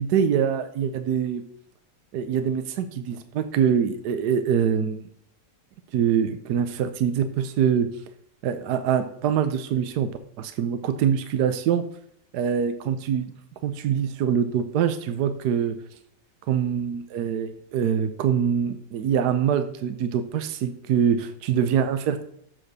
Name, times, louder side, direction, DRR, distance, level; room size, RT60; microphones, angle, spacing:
voice 1, 0.0-1.4 2.1-5.1 5.9-7.9 8.4-10.1 10.4-11.8 12.3-13.3 13.6-15.8 16.5-22.2, right 8 dB, 70° right, 9 dB, 1.2 m, -24 dB
7.6 x 4.3 x 6.6 m, 0.66 s
omnidirectional pair, 1.9 m